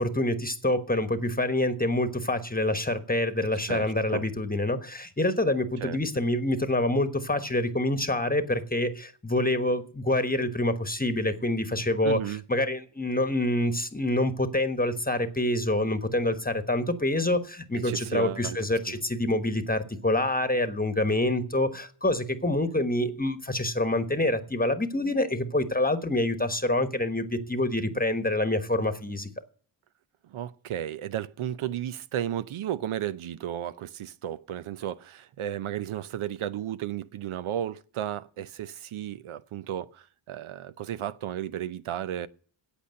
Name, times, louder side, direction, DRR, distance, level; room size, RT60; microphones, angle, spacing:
voice 1, 0.0-29.3, left 1 dB, 20° left, 1.2 m, -26 dB
voice 2, 3.7-4.3 5.8-6.0 12.0-12.4 17.8-18.6 18.9-19.0 30.2-42.3, right 11 dB, 75° right, 0.7 m, -34 dB
8.5 x 8.2 x 7.6 m
cardioid pair, 55°, 49 cm